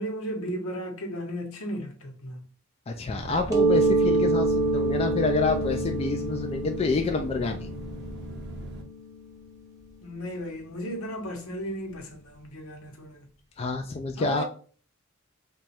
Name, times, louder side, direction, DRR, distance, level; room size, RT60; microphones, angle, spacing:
voice 1, 0.0-2.5 10.0-13.3 14.2-14.4, equal, 75° left, 0.9 m, -35 dB
voice 2, 2.9-7.7 13.6-14.4, left 3 dB, 30° left, 0.3 m, -28 dB
sound 1, 3.2-8.8, right 2 dB, 50° right, 0.5 m, -38 dB
Mallet percussion, 3.5-9.0, right 2 dB, 15° right, 0.8 m, -26 dB
3.0 x 2.3 x 4.2 m
head